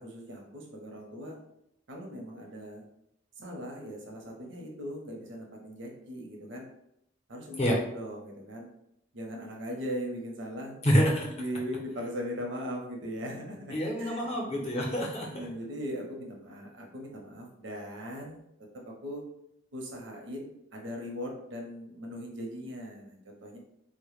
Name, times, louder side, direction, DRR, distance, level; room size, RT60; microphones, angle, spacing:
voice 1, 0.0-1.4 1.9-2.8 3.4-6.7 7.3-8.7 9.1-10.8 11.3-14.3 15.3-18.5 18.7-19.2 19.7-23.6, equal, 80° right, 0 dB, 0.6 m, -39 dB
voice 2, 10.8-11.3 13.7-15.5, equal, 35° left, -2 dB, 0.5 m, -27 dB
2.1 x 2.0 x 3.0 m, 0.78 s
head